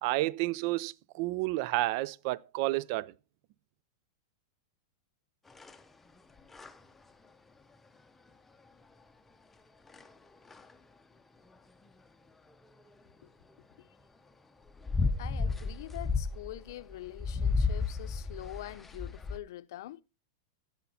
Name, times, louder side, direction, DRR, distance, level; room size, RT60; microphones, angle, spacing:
voice 1, 0.0-3.1, right 18 dB, 50° right, 0.4 m, -31 dB
sound 1, 5.5-5.8 6.4-6.7 9.9-10.1 10.5-10.7 14.7-19.4, left 4 dB, 10° left, 0.7 m, -32 dB
voice 2, 15.2-20.0, left 14 dB, 65° left, 0.6 m, -44 dB
15.0 x 5.7 x 4.1 m
supercardioid pair, 140°, 2 cm